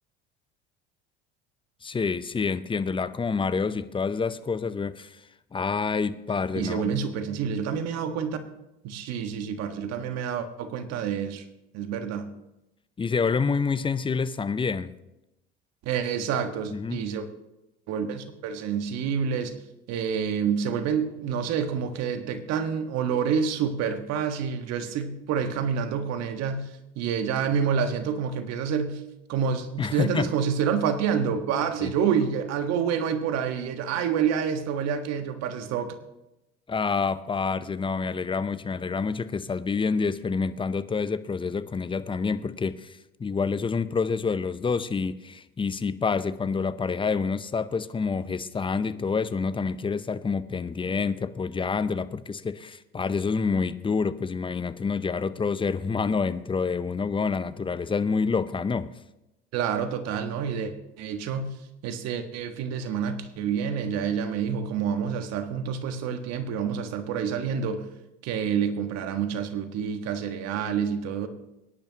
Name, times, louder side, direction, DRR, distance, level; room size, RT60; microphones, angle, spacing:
voice 1, 1.8-5.2 5.5-6.9 13.0-14.9 16.7-17.0 29.8-30.3 31.8-31.9 36.7-58.9, left 5 dB, 15° left, 14 dB, 0.7 m, -27 dB
voice 2, 6.5-8.4 8.8-11.4 11.7-12.3 15.8-17.3 17.9-19.6 19.9-26.7 26.9-29.0 29.3-35.9 59.5-61.5 61.8-67.8 68.2-71.3, right 7 dB, 60° right, 8 dB, 1.5 m, -28 dB
22.5 x 10.5 x 2.9 m, 0.90 s
hypercardioid pair, 70°, 29 cm